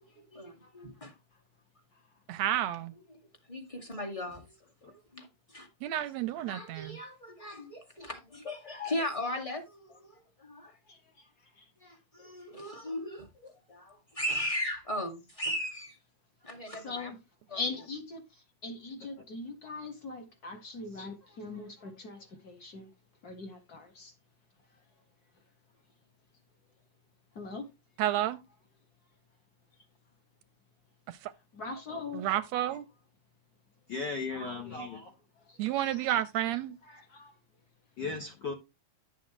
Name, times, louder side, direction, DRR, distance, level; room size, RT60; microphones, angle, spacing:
voice 1, 0.3-1.1 3.5-4.4 4.9-5.7 6.4-10.7 11.8-16.0 16.4-17.1 17.5-17.6, left 1 dB, 15° left, 1.5 m, -37 dB
voice 2, 2.3-2.9 5.8-7.0 28.0-28.4 31.1-31.3 32.1-32.9 35.6-36.8, right 12 dB, 75° right, 1.7 m, -31 dB
voice 3, 16.6-17.2 17.5-18.2 18.6-22.9 23.2-24.1 27.4-27.7 31.5-32.2 35.5-36.1 36.9-37.3, left 3 dB, 35° left, 1.7 m, -41 dB
voice 4, 31.6-32.0 33.9-35.1 38.0-38.5, left 4 dB, 55° left, 1.2 m, -37 dB
11.0 x 7.5 x 3.1 m
omnidirectional pair, 3.5 m